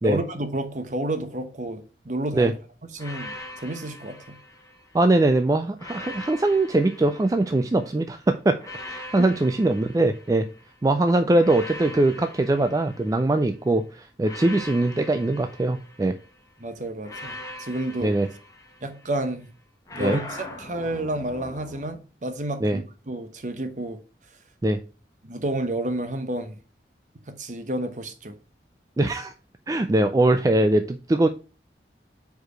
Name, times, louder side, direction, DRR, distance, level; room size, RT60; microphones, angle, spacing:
voice 1, 0.0-2.5 2.9-4.4 9.2-9.3 16.6-18.2 18.8-19.5 19.9-24.0 25.2-26.6 27.3-28.3, right 1 dB, 45° right, 0.9 m, -30 dB
sound 1, 3.0-5.1 5.8-7.9 8.6-10.8 11.4-13.6 14.2-16.4 17.0-19.2 19.9-21.9, left 1 dB, 20° left, 1.2 m, -41 dB
voice 2, 4.9-8.6 8.9-10.5 10.8-16.2 18.0-18.3 20.0-20.2 22.6-22.8 24.6-24.8 29.0-29.3 29.7-31.3, right 2 dB, 20° right, 0.3 m, -22 dB
4.8 x 4.7 x 5.0 m
head